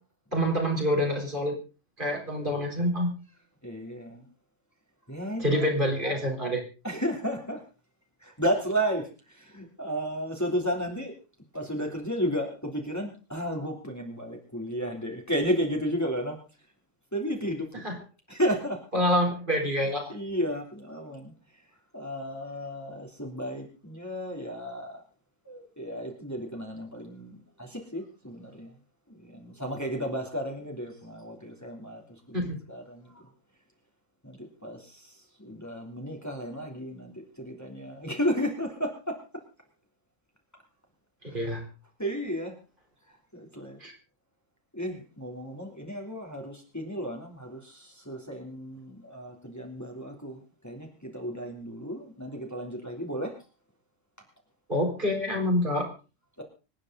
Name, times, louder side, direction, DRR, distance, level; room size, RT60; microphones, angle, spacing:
voice 1, 0.3-1.6 2.0-3.1 5.4-6.6 17.8-18.0 18.9-20.1 32.3-32.6 41.3-41.6 43.8-43.9 54.7-55.9, equal, 40° right, 1 dB, 4.2 m, -26 dB
voice 2, 3.6-4.2 5.1-5.6 6.8-7.6 8.2-11.1 11.5-16.4 17.1-17.8 18.3-18.8 20.1-21.3 21.9-25.0 25.4-28.7 29.1-33.3 34.2-39.4 41.3-41.6 42.0-42.6 43.1-43.8 44.7-53.3 56.4-56.5, equal, 10° left, 1 dB, 3.2 m, -33 dB
26.5 x 9.8 x 4.0 m, 0.34 s
omnidirectional pair, 1.4 m